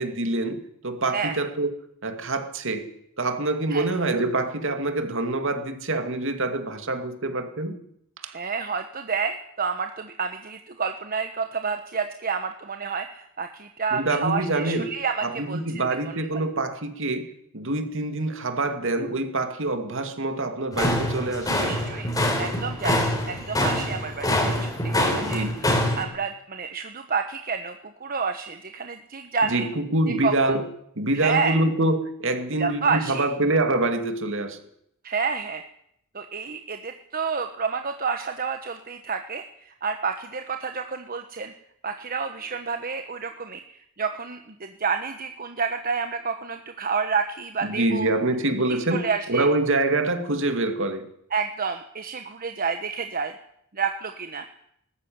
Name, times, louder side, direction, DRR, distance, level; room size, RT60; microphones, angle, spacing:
voice 1, 0.0-1.7 2.0-2.9 3.2-7.8 8.2-8.4 13.9-14.9 15.2-17.3 17.5-21.8 25.2-25.6 29.4-30.7 31.0-34.6 47.6-51.1, right 2 dB, 60° right, 2.5 m, -25 dB
voice 2, 8.3-15.6 16.3-16.4 21.6-22.1 22.4-25.7 26.0-29.7 30.2-30.5 31.2-31.6 32.6-33.3 35.0-35.6 36.1-41.5 41.8-48.1 48.9-49.5 51.3-53.3 53.7-54.5, right 5 dB, 45° right, 1.1 m, -29 dB
sound 1, 20.7-26.0, left 1 dB, 20° left, 4.0 m, -25 dB
19.5 x 14.0 x 9.5 m
head